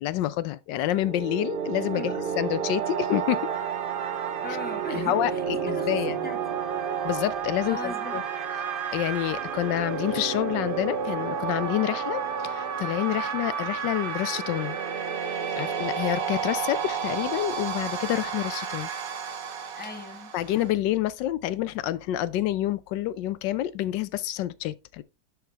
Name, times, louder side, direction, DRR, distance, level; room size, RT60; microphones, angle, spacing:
voice 1, 0.0-3.5 4.9-6.2 7.0-8.2 8.9-14.8 15.6-18.9 20.3-25.0, left 13 dB, 85° left, 1.3 m, -28 dB
sound 1, 0.8-20.7, right 7 dB, 65° right, 0.5 m, -31 dB
voice 2, 4.4-6.6 7.6-8.2 19.7-20.3, left 3 dB, 5° left, 1.2 m, -39 dB
12.0 x 4.7 x 3.3 m
omnidirectional pair, 1.9 m